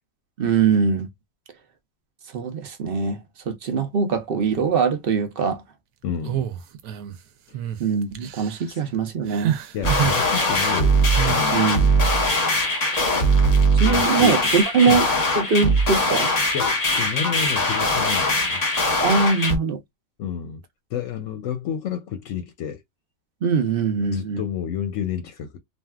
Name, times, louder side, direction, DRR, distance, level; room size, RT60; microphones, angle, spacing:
voice 1, 0.4-1.1 2.3-5.6 7.8-9.5 11.5-11.9 13.8-15.1 15.4-16.3 19.0-19.8 23.4-24.4, right 5 dB, 50° right, 0.7 m, -22 dB
voice 2, 6.0-6.5 8.7-8.8 9.7-11.0 11.3-11.8 13.9-14.4 14.9-15.0 16.5-18.6 20.2-20.6 20.9-22.8 24.1-25.6, left 8 dB, 70° left, 0.9 m, -30 dB
sound 1, 6.2-7.2 7.5-7.8 8.2-8.6 9.3-10.2 11.2-11.5, right 10 dB, 80° right, 1.0 m, -27 dB
sound 2, 9.8-19.6, equal, 30° left, 1.1 m, -21 dB
3.4 x 2.4 x 2.3 m
omnidirectional pair, 1.5 m